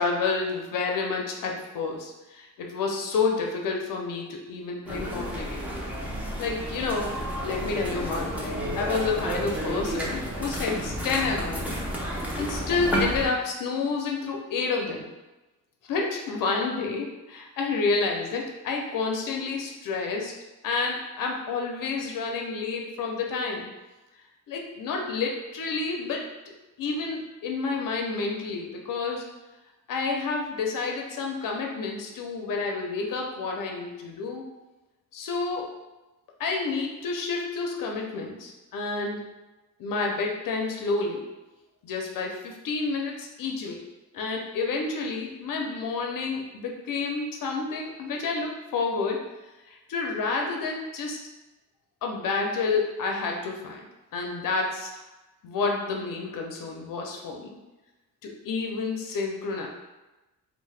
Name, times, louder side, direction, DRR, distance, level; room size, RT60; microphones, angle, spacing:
voice 1, 0.0-5.8 6.4-11.7 12.4-15.1 15.8-20.3 20.6-23.7 24.5-26.3 26.8-29.2 29.9-34.4 35.1-35.7 36.4-39.3 39.8-41.3 41.8-43.8 44.1-49.2 49.7-51.2 52.0-53.9 54.1-55.0 55.4-57.5 58.4-59.7, left 4 dB, 85° left, 1 dB, 0.5 m, -29 dB
sound 1, 4.9-13.3, right 1 dB, 5° right, 0.4 m, -31 dB
2.7 x 2.1 x 3.2 m, 1.1 s
wide cardioid pair, 160°, 32 cm